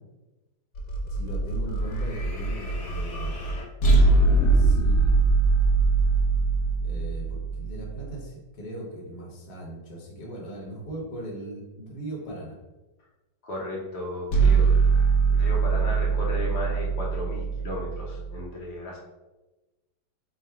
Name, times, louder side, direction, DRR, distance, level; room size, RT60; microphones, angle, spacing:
sound 1, 0.7-8.1 14.3-18.4, right 4 dB, 85° left, 0.6 m, -22 dB
voice 1, 1.1-3.4 4.0-5.3 6.8-12.5, right 1 dB, 45° left, -2 dB, 1.0 m, -39 dB
voice 2, 13.4-14.7 15.3-19.0, left 1 dB, 65° left, -3 dB, 1.2 m, -35 dB
3.8 x 2.0 x 4.4 m, 1.1 s
omnidirectional pair, 2.0 m